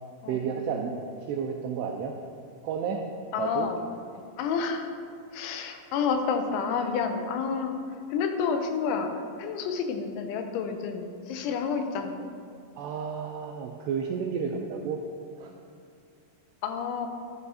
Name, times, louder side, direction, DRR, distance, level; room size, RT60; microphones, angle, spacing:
voice 1, 0.3-0.9 1.3-2.1 2.6-3.0 3.4-3.7 12.8-15.0 15.4-15.5, right 6 dB, 90° right, 2 dB, 2.4 m, -31 dB
voice 2, 3.3-3.8 4.4-4.9 5.3-7.8 8.1-12.4 16.6-17.1, left 5 dB, 85° left, 5 dB, 3.1 m, -29 dB
11.5 x 11.0 x 2.8 m, 2.3 s
omnidirectional pair, 5.4 m